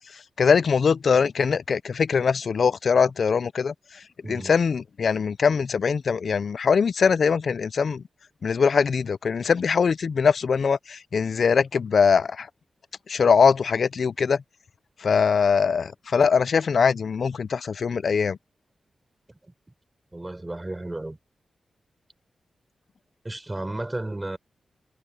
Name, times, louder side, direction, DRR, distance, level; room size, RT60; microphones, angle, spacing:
voice 1, 0.0-8.0 8.4-12.5 13.1-14.4 15.0-18.4, left 6 dB, 60° left, 0.4 m, -22 dB
voice 2, 20.1-21.2 23.2-24.4, right 2 dB, 15° right, 4.4 m, -33 dB
wide cardioid pair, 125°, 0 cm